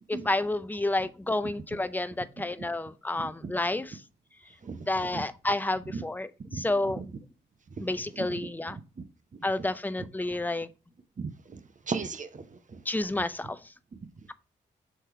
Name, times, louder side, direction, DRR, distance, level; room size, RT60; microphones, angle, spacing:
voice 1, 0.1-3.9 4.9-7.0 7.8-8.8 9.4-10.7 12.9-13.6, left 2 dB, 10° left, 0.5 m, -30 dB
voice 2, 3.2-3.6 4.6-5.2 5.9-6.0 6.5-7.0 7.8-7.9 8.1-8.4 8.7-8.8 9.6-9.7 11.2-12.8 13.9-14.0, right 4 dB, 40° right, 0.9 m, -38 dB
6.5 x 3.3 x 4.4 m
hypercardioid pair, 45°, 21 cm